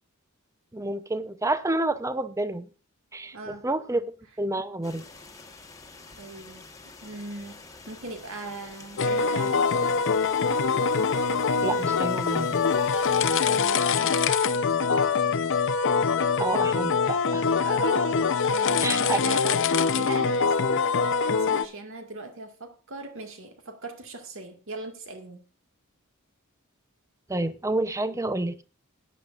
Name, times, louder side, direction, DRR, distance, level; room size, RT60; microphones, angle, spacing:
voice 1, 0.7-2.7 3.1-4.0 4.4-5.1 11.6-12.6 16.4-17.5 18.8-19.6 27.3-28.6, right 2 dB, 15° right, 0.7 m, -29 dB
voice 2, 3.3-4.0 6.2-9.6 13.4-14.5 17.6-18.2 18.5-19.5 20.0-20.6 21.3-25.4, right 2 dB, 65° right, 2.0 m, -39 dB
sound 1, 4.8-13.7, left 3 dB, 15° left, 1.4 m, -47 dB
sound 2, 9.0-21.7, left 5 dB, 60° left, 0.7 m, -24 dB
17.0 x 9.8 x 2.5 m
head